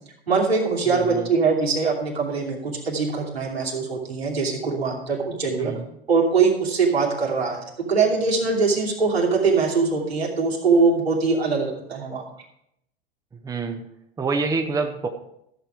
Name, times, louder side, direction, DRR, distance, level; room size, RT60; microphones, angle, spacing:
voice 1, 0.3-5.7 6.1-12.2, right 4 dB, 75° right, -3 dB, 2.8 m, -22 dB
voice 2, 0.9-1.3 5.6-5.8 13.4-13.8 14.2-15.1, right 4 dB, 10° right, 6 dB, 0.9 m, -26 dB
13.5 x 7.2 x 4.7 m, 0.77 s
figure-of-eight pair, 90°, 31 cm